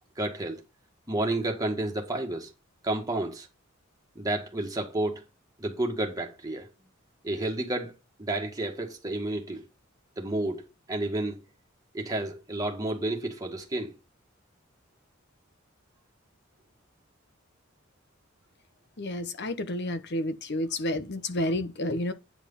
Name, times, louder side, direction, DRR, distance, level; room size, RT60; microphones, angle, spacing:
voice 1, 0.2-0.6 1.1-2.5 2.8-3.5 4.2-5.2 5.6-6.7 7.2-9.6 10.2-11.4 11.9-13.9, right 2 dB, 20° right, 1.9 m, -31 dB
voice 2, 19.0-22.1, left 1 dB, 55° left, 1.0 m, -30 dB
9.4 x 4.8 x 5.7 m
head